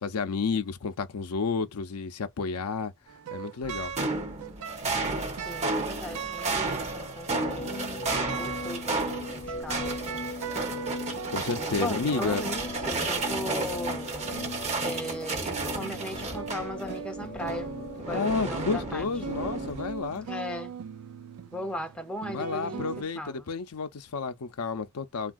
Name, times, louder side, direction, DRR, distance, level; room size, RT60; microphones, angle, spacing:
voice 1, 0.0-2.9 3.3-3.9 11.3-12.4 18.1-20.3 22.3-25.3, left 4 dB, 75° left, 0.5 m, -31 dB
sound 1, 3.1-23.0, right 7 dB, 75° right, 0.4 m, -40 dB
sound 2, 3.6-17.0 17.4-20.1, right 3 dB, 30° right, 0.7 m, -33 dB
voice 2, 5.4-10.2 11.8-14.3 14.8-17.7 18.0-19.1 20.3-20.8 21.5-23.5, left 1 dB, 5° left, 0.5 m, -38 dB
sound 3, 7.3-19.7, left 3 dB, 45° left, 0.7 m, -39 dB
3.4 x 2.3 x 2.4 m
head